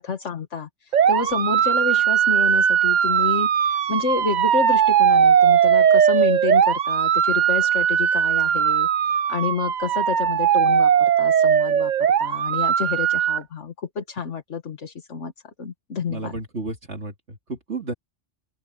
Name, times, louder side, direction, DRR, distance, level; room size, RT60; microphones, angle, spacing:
voice 1, 0.0-16.4, left 5 dB, 70° left, 1.9 m, -29 dB
sound 1, 0.9-13.4, right 8 dB, 50° right, 0.6 m, -19 dB
voice 2, 16.1-17.9, right 3 dB, 65° right, 3.2 m, -32 dB
open air
omnidirectional pair, 1.3 m